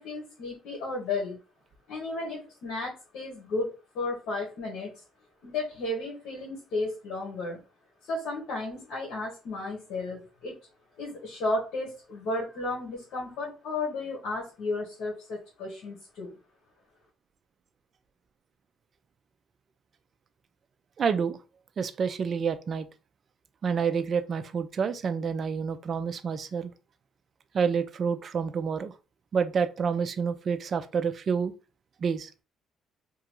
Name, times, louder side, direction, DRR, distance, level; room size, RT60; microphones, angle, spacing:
voice 1, 0.0-1.4 1.9-5.0 5.4-7.6 8.0-10.6 11.0-16.3, left 2 dB, 80° left, 1.2 m, -33 dB
voice 2, 21.0-21.4 21.8-22.9 23.6-26.7 27.5-28.9 29.3-31.5 32.0-32.3, right 6 dB, 40° right, 0.3 m, -28 dB
2.9 x 2.4 x 3.0 m
cardioid pair, 120°, 0 cm